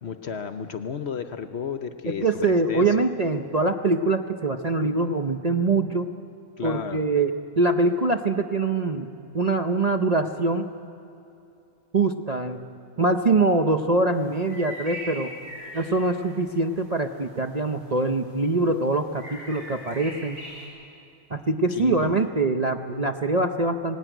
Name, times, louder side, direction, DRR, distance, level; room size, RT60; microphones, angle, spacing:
voice 1, 0.0-3.1 6.6-7.0 21.7-22.1, left 6 dB, 55° left, 9 dB, 0.9 m, -33 dB
voice 2, 2.2-6.1 6.6-9.1 9.3-10.7 11.9-12.6 13.0-15.3 15.7-20.4 21.3-24.0, right 2 dB, 35° right, 6 dB, 0.7 m, -23 dB
sound 1, 14.1-20.7, equal, 80° right, 5.7 m, -42 dB
19.0 x 19.0 x 9.1 m, 2.7 s
omnidirectional pair, 1.6 m